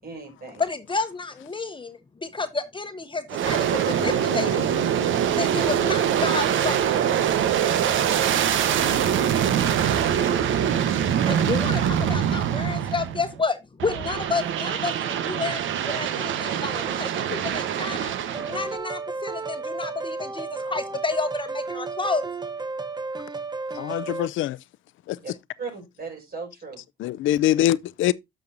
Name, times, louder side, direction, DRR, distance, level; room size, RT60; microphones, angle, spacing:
voice 1, 0.0-0.6 25.2-25.3 25.6-26.8, right 4 dB, 50° right, 5.8 m, -37 dB
voice 2, 0.6-4.6 5.3-6.9 11.3-15.6 15.8-18.1 18.4-22.3, left 4 dB, 25° left, 1.0 m, -30 dB
Aircraft, 3.3-13.3 13.8-18.8, right 9 dB, 75° right, 1.1 m, -24 dB
Backing Piano, 18.3-24.3, right 3 dB, 20° right, 0.7 m, -33 dB
voice 3, 23.7-24.6 25.1-25.2 27.0-28.1, left 13 dB, 80° left, 0.5 m, -23 dB
10.5 x 6.4 x 2.6 m
cardioid pair, 90°, 20 cm